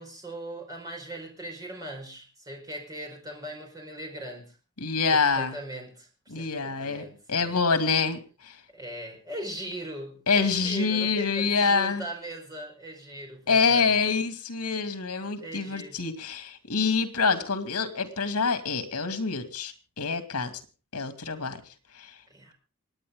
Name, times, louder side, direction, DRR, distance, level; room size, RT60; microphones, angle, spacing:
voice 1, 0.0-4.6 5.1-7.6 8.7-13.9 15.4-16.0 22.3-22.5, right 1 dB, 15° right, 1 dB, 5.0 m, -39 dB
voice 2, 4.8-5.6 6.3-7.0 7.3-8.6 10.3-12.0 13.5-20.5 20.9-21.6 21.9-22.2, left 5 dB, 80° left, 8 dB, 2.5 m, -26 dB
27.5 x 9.6 x 3.8 m, 0.33 s
head